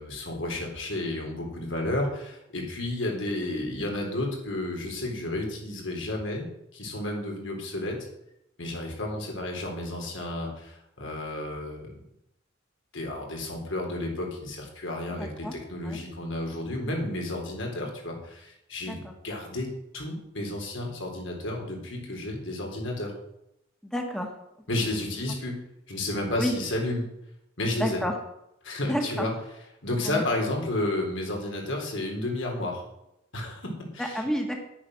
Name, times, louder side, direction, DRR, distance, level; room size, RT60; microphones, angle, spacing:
voice 1, 0.0-6.5 6.7-8.0 8.6-11.9 12.9-23.1 24.7-25.6 25.9-27.1 27.6-28.0 28.6-29.3 29.8-32.8 33.3-34.2, left 1 dB, 75° left, 1 dB, 3.8 m, -32 dB
voice 2, 15.2-15.6 15.8-16.0 18.9-19.1 23.8-24.3 26.4-26.5 27.8-28.2 28.8-29.3 30.0-30.2 34.0-34.6, equal, 5° left, 3 dB, 1.5 m, -30 dB
10.0 x 9.9 x 6.5 m, 0.82 s
head